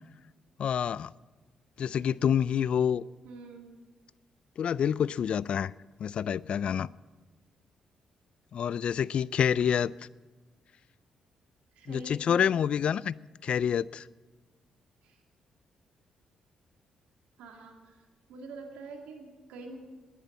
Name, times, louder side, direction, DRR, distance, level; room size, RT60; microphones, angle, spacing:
voice 1, 0.6-1.1 1.8-3.0 4.6-5.7 6.0-6.9 8.5-9.9 11.9-13.1 13.4-14.1, left 8 dB, 60° left, 0.3 m, -27 dB
voice 2, 3.2-3.6 11.8-12.5 15.0-15.2 17.4-18.0 18.3-19.8, right 3 dB, 80° right, 2.2 m, -45 dB
10.5 x 10.0 x 9.7 m
supercardioid pair, 55°, 2 cm